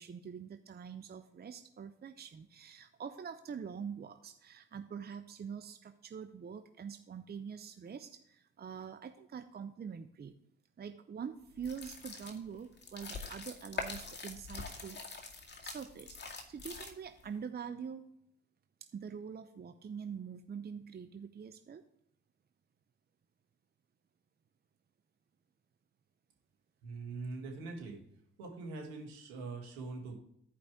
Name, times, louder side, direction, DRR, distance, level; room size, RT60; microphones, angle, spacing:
voice 1, 0.0-10.3 10.8-15.0 15.6-18.0 18.9-21.8, right 7 dB, 35° right, 8 dB, 0.7 m, -45 dB
sound 1, 11.6-17.2, left 4 dB, 35° left, 2.0 m, -44 dB
voice 2, 26.8-28.1 28.4-30.2, right 3 dB, 90° right, 1 dB, 2.0 m, -43 dB
13.5 x 5.1 x 3.6 m, 0.72 s
hypercardioid pair, 55°, 30 cm